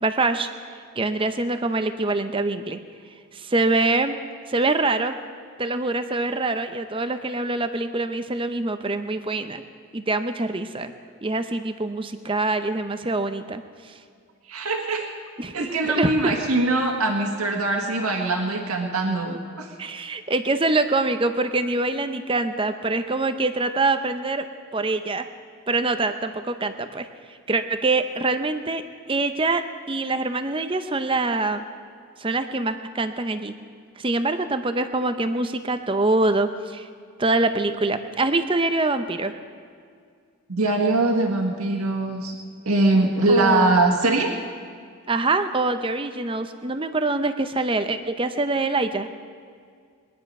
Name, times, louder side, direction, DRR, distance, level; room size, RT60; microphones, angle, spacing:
voice 1, 0.0-0.5 1.0-2.8 3.3-4.2 4.5-5.2 5.6-9.6 9.9-10.9 11.2-14.0 15.4-16.3 19.8-24.4 24.7-25.3 25.7-27.1 27.5-28.8 29.1-31.6 32.2-33.5 34.0-36.9 37.2-39.3 43.3-43.8 45.1-49.1, right 2 dB, 25° right, 9 dB, 0.7 m, -24 dB
voice 2, 14.5-15.1 15.5-19.7 40.5-42.4 42.6-44.3, right 2 dB, 85° right, 2 dB, 1.6 m, -22 dB
22.5 x 10.5 x 5.4 m, 2.2 s
head